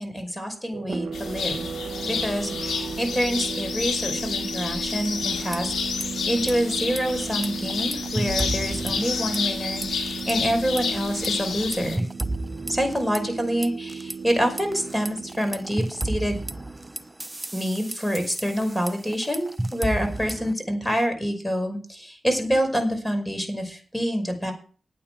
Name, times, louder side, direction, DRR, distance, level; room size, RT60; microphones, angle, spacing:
voice 1, 0.0-1.7 2.1-12.0 12.7-16.4 17.5-24.5, equal, 10° left, 5 dB, 5.4 m, -27 dB
sound 1, 0.7-17.0, right 5 dB, 70° right, 1.0 m, -35 dB
sound 2, 1.1-12.0, left 6 dB, 85° left, 2.4 m, -30 dB
sound 3, 5.3-6.1 6.3-6.5 6.9-9.6 9.8-10.3 10.8-14.1 14.6-20.5, right 1 dB, 20° right, 0.9 m, -32 dB
9.3 x 9.1 x 7.4 m, 0.39 s
cardioid pair, 45°, 0 cm